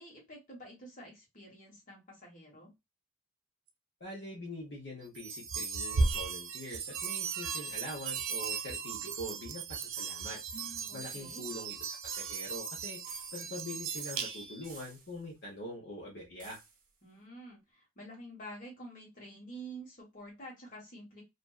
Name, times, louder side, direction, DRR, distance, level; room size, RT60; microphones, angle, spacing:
voice 1, 0.0-2.7 10.9-11.4 17.0-21.2, right 1 dB, 40° left, -3 dB, 1.3 m, -49 dB
voice 2, 4.0-16.6, left 1 dB, 55° left, -5 dB, 0.9 m, -44 dB
sound 1, 5.2-14.7, right 4 dB, 85° right, 0.5 m, -36 dB
sound 2, 11.0-11.6 12.0-12.7 13.1-13.7 14.0-15.3 16.4-16.9, right 5 dB, 40° right, 0.8 m, -54 dB
2.5 x 2.2 x 2.3 m, 0.22 s
head